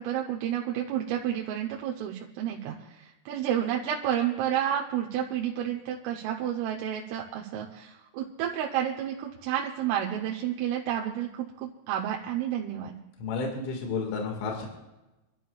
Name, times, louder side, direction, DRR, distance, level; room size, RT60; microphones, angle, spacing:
voice 1, 0.0-13.0, right 10 dB, 80° right, 0 dB, 3.4 m, -30 dB
voice 2, 13.2-14.7, left 4 dB, 70° left, 1 dB, 4.2 m, -31 dB
28.5 x 12.5 x 2.3 m, 1.0 s
omnidirectional pair, 6.0 m